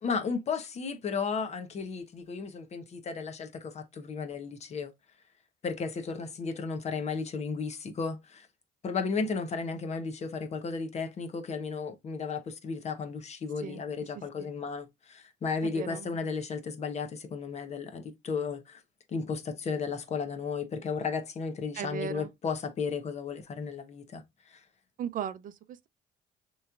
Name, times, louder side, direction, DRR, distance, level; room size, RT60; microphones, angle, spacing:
voice 1, 0.0-4.9 5.6-8.5 8.8-18.8 19.1-24.6, left 5 dB, 40° left, 1.0 m, -34 dB
voice 2, 15.6-16.1 21.7-22.3 25.0-25.9, right 8 dB, 55° right, 0.5 m, -37 dB
6.3 x 3.1 x 2.4 m
cardioid pair, 110°, 17 cm